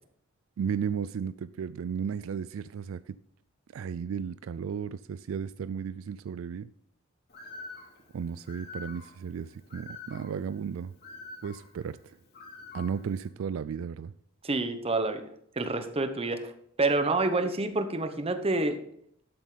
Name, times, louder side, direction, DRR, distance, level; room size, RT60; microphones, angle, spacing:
voice 1, 0.6-3.2 3.7-6.7 8.1-10.9 11.4-12.0 12.7-14.1, right 7 dB, 75° right, 0.3 m, -34 dB
Bird, 7.3-13.3, left 3 dB, 50° left, 2.5 m, -47 dB
voice 2, 14.4-15.2 15.6-16.5 16.8-18.8, right 2 dB, 30° right, 1.0 m, -28 dB
12.5 x 7.9 x 4.0 m
head